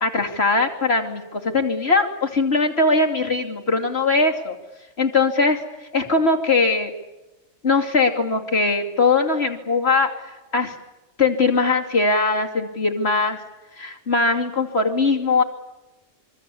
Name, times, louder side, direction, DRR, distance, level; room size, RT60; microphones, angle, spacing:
voice 1, 0.0-4.6 5.0-5.6 5.9-6.9 7.6-10.7 11.2-13.4 13.8-15.4, left 3 dB, 55° left, 2 dB, 3.1 m, -20 dB
26.5 x 23.5 x 8.5 m, 1.1 s
omnidirectional pair, 1.3 m